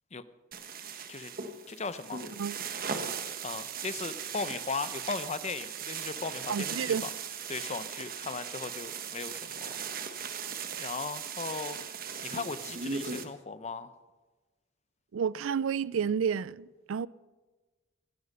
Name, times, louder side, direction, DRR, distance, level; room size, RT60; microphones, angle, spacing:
sound 1, 0.5-13.2, right 6 dB, 50° right, 1.3 m, -38 dB
voice 1, 1.7-2.3 3.4-7.1 7.5-9.8 10.8-11.8 12.2-13.9, left 4 dB, 35° left, 0.7 m, -37 dB
voice 2, 6.5-7.0 15.1-17.1, right 7 dB, 90° right, 0.4 m, -30 dB
16.5 x 14.5 x 5.5 m
head